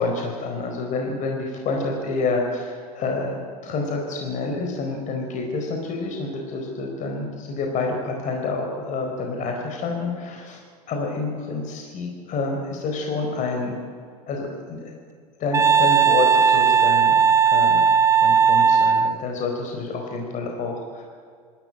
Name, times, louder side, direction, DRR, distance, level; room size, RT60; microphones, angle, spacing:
voice 1, 0.0-10.6 10.9-13.8 14.3-14.9 15.4-17.9 18.2-21.0, left 3 dB, 40° left, 2 dB, 4.3 m, -28 dB
Wind instrument woodwind instrument, 15.5-19.2, right 6 dB, 15° right, 0.5 m, -17 dB
25.0 x 13.5 x 10.0 m, 2.1 s
hypercardioid pair, 90°, 19 cm